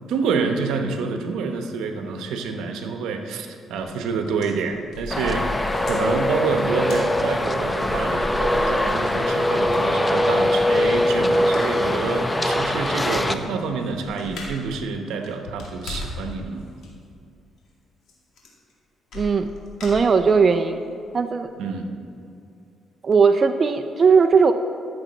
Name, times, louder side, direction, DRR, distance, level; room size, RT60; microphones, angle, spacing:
voice 1, 0.1-16.6 21.6-21.9, right 5 dB, 90° right, 5 dB, 0.8 m, -27 dB
sound 1, 3.8-4.0 4.2-9.4 9.7-9.8 11.5-11.8 12.2-12.3 12.6-12.7 12.9-14.7 15.1-16.3 16.6-16.9 18.1-18.2 18.4-18.7 19.1-20.5 21.0-21.1 21.4-21.5, left 2 dB, 75° left, 2.2 m, -37 dB
Traffic noise roadway noise, 5.1-13.3, left 1 dB, 15° left, 0.5 m, -22 dB
voice 2, 19.1-19.5 19.8-20.8 21.1-21.5 23.0-24.5, right 5 dB, 40° right, 6 dB, 0.4 m, -18 dB
13.5 x 6.8 x 4.1 m, 2.5 s
cardioid pair, 90°, 0 cm